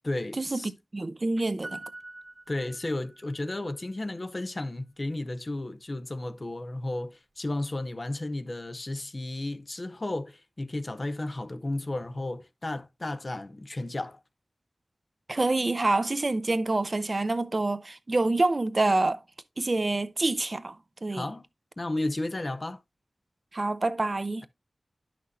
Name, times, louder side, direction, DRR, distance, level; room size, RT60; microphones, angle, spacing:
voice 1, 0.0-0.7 2.5-14.2 21.1-21.5 21.8-22.8, left 2 dB, 45° left, 0.7 m, -33 dB
voice 2, 0.9-1.8 15.3-19.2 19.6-21.2 23.5-24.5, right 2 dB, 45° right, 0.7 m, -27 dB
Piano, 1.6-3.4 3.7-3.8, right 2 dB, 30° right, 1.4 m, -44 dB
11.0 x 6.0 x 2.6 m
wide cardioid pair, 65°, 0 cm